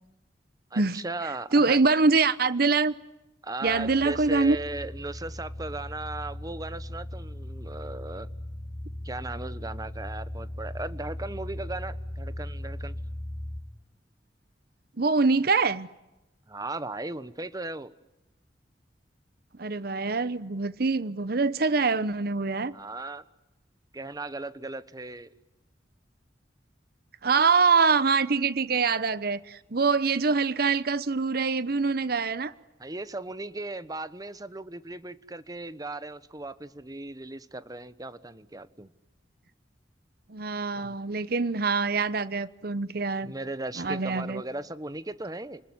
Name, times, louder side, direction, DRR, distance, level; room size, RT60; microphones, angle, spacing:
voice 1, 0.7-1.8 3.4-8.3 9.0-13.0 16.5-17.9 22.7-23.2 23.9-25.3 32.8-38.9 40.7-40.9 43.2-45.6, right 2 dB, 20° right, 1.1 m, -37 dB
voice 2, 1.5-2.9 3.6-4.6 15.0-15.9 19.6-22.7 27.2-32.5 40.3-43.3 43.8-44.4, right 4 dB, 60° right, 0.9 m, -24 dB
sound 1, 3.7-13.6, left 1 dB, 15° left, 2.5 m, -38 dB
29.5 x 21.0 x 9.7 m
head